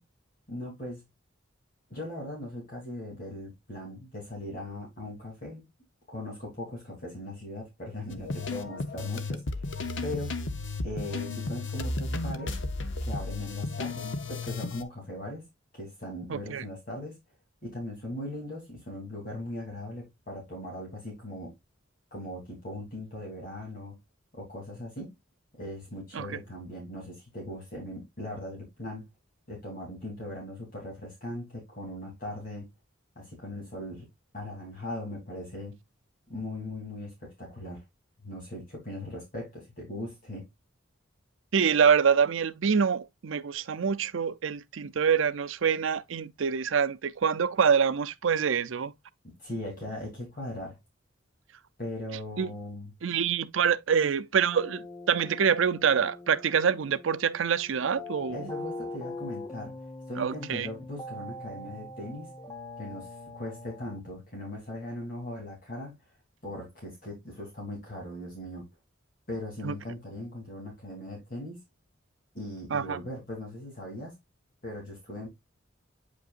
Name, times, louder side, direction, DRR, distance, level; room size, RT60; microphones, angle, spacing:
voice 1, 0.5-1.0 1.9-5.6 6.1-9.7 10.0-10.4 10.8-12.6 13.0-15.4 15.7-17.2 17.6-21.5 22.1-24.0 24.3-25.1 25.6-29.0 29.5-32.7 33.1-34.1 34.3-35.8 36.3-37.8 38.2-40.5 49.4-50.8 51.8-52.9 58.3-59.7 60.1-62.3 62.8-66.0 66.4-68.7 69.3-71.6 72.3-74.1 74.6-75.3, left 1 dB, 45° left, 3.0 m, -39 dB
sound 1, 8.1-14.8, left 3 dB, 70° left, 0.8 m, -33 dB
voice 2, 16.3-16.6 26.1-26.3 41.5-48.9 52.4-52.5 53.0-58.5 60.2-60.7 69.6-69.7 72.7-73.0, right 6 dB, 80° right, 0.5 m, -26 dB
sound 2, 54.5-64.0, left 2 dB, 20° left, 0.8 m, -42 dB
8.5 x 5.3 x 2.5 m
head